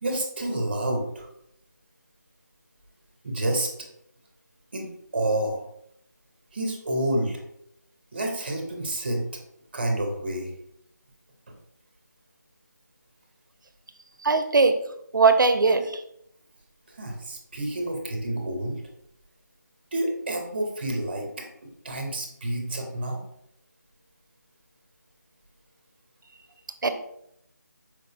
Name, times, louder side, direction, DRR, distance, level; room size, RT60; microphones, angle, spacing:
voice 1, 0.0-1.3 3.2-3.7 4.7-5.6 6.5-7.4 8.1-9.2 9.7-10.5 16.9-18.8 19.9-21.4 21.8-23.2, right 1 dB, 30° right, 2 dB, 0.5 m, -29 dB
voice 2, 14.2-14.7 15.1-16.0 26.8-26.9, right 4 dB, 80° right, 9 dB, 0.4 m, -19 dB
4.4 x 2.0 x 2.6 m, 0.75 s
figure-of-eight pair, 170°, 10 cm